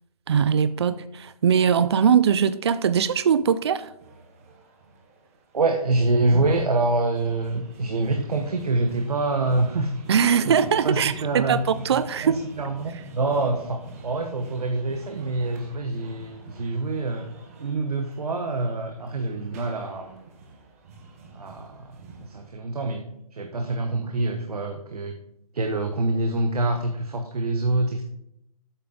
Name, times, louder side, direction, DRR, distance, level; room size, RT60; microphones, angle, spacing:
voice 1, 0.3-3.9 10.1-12.4, right 7 dB, 45° right, 14 dB, 0.4 m, -21 dB
sound 1, 4.0-22.5, right 3 dB, 25° right, 0.8 m, -47 dB
voice 2, 5.5-10.0 10.4-10.6 10.8-11.6 11.9-17.3 17.6-20.2 21.3-21.9 22.2-23.0 23.3-25.1 25.5-28.0, right 2 dB, 85° right, 5 dB, 0.9 m, -26 dB
8.0 x 5.8 x 3.8 m, 0.80 s
hypercardioid pair, 160°, 19 cm